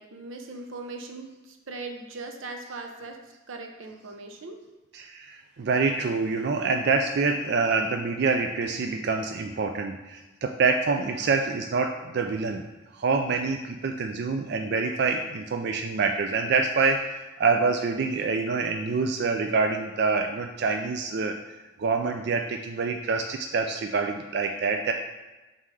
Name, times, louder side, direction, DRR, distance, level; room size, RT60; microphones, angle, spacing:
voice 1, 0.0-3.2 3.5-4.6, right 3 dB, 90° right, 4 dB, 0.8 m, -39 dB
voice 2, 4.9-12.6 12.9-21.3 21.8-24.9, right 4 dB, 55° right, 4 dB, 0.4 m, -26 dB
5.7 x 4.0 x 4.8 m, 1.1 s
head